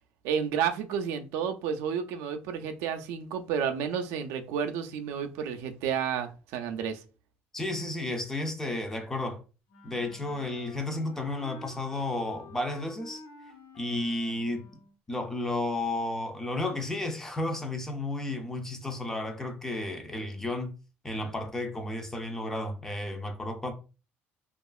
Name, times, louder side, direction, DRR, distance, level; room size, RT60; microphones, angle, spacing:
voice 1, 0.2-7.0, right 7 dB, 90° right, 0.4 m, -31 dB
voice 2, 7.5-9.4 9.8-13.2 13.8-14.7 15.1-20.7 21.0-23.7, left 2 dB, 10° left, 0.4 m, -32 dB
Wind instrument woodwind instrument, 9.7-14.9, left 3 dB, 55° left, 0.7 m, -50 dB
2.8 x 2.4 x 2.3 m
cardioid pair, 165°, 5 cm